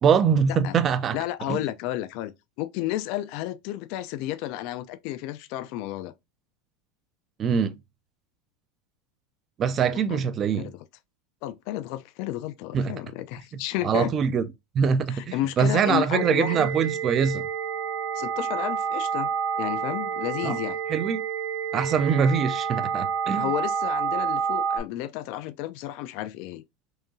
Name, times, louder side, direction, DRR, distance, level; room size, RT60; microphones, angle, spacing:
voice 1, 0.0-1.2 1.5-1.6 7.4-7.8 9.6-10.7 12.7-12.9 13.8-14.4 14.7-17.5 20.4-20.6 20.9-21.2 21.7-23.5, right 6 dB, 25° right, 0.4 m, -23 dB
voice 2, 1.1-2.3 2.6-6.1 9.9-10.2 10.6-10.8 11.4-14.1 15.1-16.7 18.1-19.3 19.6-20.8 23.4-26.6, left 14 dB, 50° left, 0.3 m, -32 dB
sound 1, 16.1-24.8, right 7 dB, 50° right, 0.8 m, -29 dB
3.7 x 2.8 x 2.6 m
supercardioid pair, 155°, 0 cm